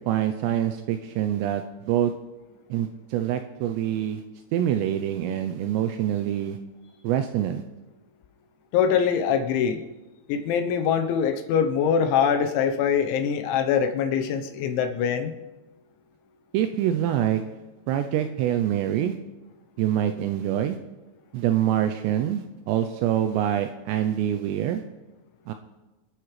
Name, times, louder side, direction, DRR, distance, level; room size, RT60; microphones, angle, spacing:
voice 1, 0.1-2.1 2.7-4.2 4.5-6.6 7.0-7.6 16.5-17.4 17.9-19.2 19.8-20.8 21.3-24.8 25.5-25.6, right 11 dB, 85° right, 8 dB, 2.5 m, -25 dB
voice 2, 8.7-9.8 10.3-15.3, left 7 dB, 80° left, 6 dB, 3.1 m, -23 dB
28.0 x 9.8 x 3.2 m, 1.1 s
omnidirectional pair, 5.6 m